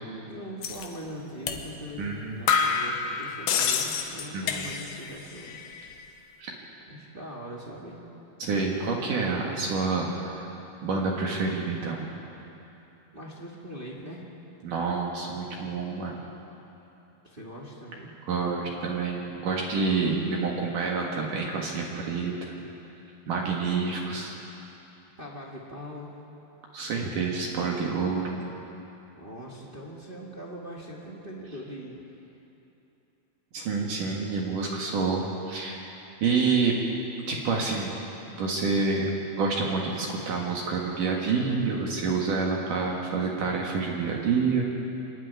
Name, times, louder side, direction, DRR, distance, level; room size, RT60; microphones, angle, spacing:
voice 1, 0.3-5.6 6.9-8.1 13.1-14.3 17.2-18.2 25.2-26.1 29.1-32.1, equal, 20° right, -3 dB, 1.3 m, -41 dB
sound 1, 0.6-0.9 1.5-1.6 2.0-2.1 2.5-5.1 5.4-6.0, left 6 dB, 75° left, 3.0 m, -28 dB
voice 2, 2.0-2.4 4.3-4.7 6.4-6.6 8.4-10.5 10.8-12.0 14.6-16.2 18.3-22.3 23.3-24.3 26.7-28.3 33.5-35.9 36.2-36.8 37.3-38.0 38.3-39.1 39.4-44.6, right 4 dB, 60° right, -1 dB, 3.1 m, -28 dB
25.0 x 12.0 x 9.5 m, 3.0 s
omnidirectional pair, 4.4 m